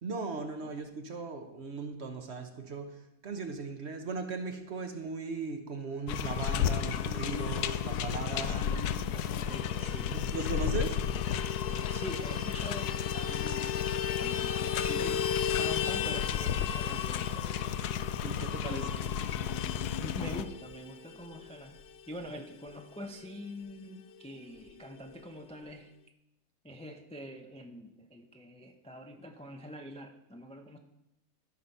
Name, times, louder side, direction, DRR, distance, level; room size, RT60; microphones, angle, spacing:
voice 1, 0.0-2.9 3.2-8.5 10.1-11.0 14.9-15.0 18.2-18.8, right 3 dB, 50° right, 6 dB, 1.2 m, -38 dB
sound 1, 6.1-20.4, left 9 dB, 90° left, 1.1 m, -33 dB
voice 2, 8.3-10.2 11.7-13.9 14.2-15.2 15.6-17.7 18.6-19.1 20.0-21.8 22.1-25.9 26.6-30.8, equal, 10° left, 4 dB, 0.4 m, -45 dB
Vehicle horn car horn honking, 9.5-23.4 23.7-23.8 24.1-24.3 24.5-25.2, left 8 dB, 65° left, 0.6 m, -37 dB
13.5 x 6.0 x 5.4 m, 0.88 s
omnidirectional pair, 1.6 m